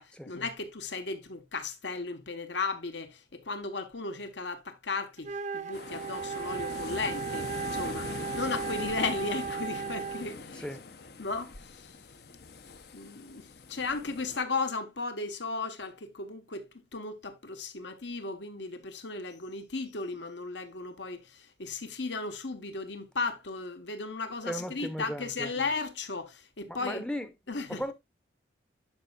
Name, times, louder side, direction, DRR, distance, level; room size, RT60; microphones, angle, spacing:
voice 1, 0.0-10.7 11.2-12.0 12.9-27.0 27.5-27.9, left 3 dB, 75° left, 1.3 m, -35 dB
Wind instrument woodwind instrument, 5.2-10.4, right 6 dB, 40° right, 0.4 m, -36 dB
sound 1, 5.7-14.4, left 3 dB, 55° left, 0.8 m, -42 dB
voice 2, 24.4-25.5 26.7-27.3 27.8-27.9, equal, 5° left, 0.7 m, -36 dB
11.5 x 5.4 x 2.4 m
head